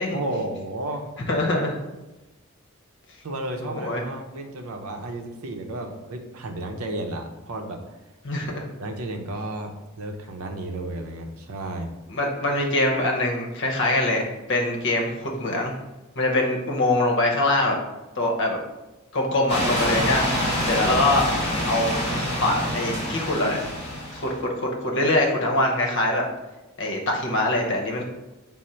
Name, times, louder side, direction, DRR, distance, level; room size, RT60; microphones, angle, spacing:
voice 1, 0.1-1.1 3.2-7.8 8.8-11.9 12.6-12.7, right 1 dB, 75° right, 4 dB, 0.6 m, -33 dB
voice 2, 1.3-1.8 3.6-4.0 8.2-8.6 12.1-15.7 16.2-17.8 18.2-18.6 19.1-20.3 20.6-21.3 21.6-21.9 22.4-23.6 24.1-26.2 26.8-28.0, left 1 dB, 55° left, 0 dB, 0.8 m, -23 dB
sound 1, 19.5-24.4, equal, 30° left, 1.3 m, -26 dB
5.1 x 2.0 x 4.3 m, 1.1 s
head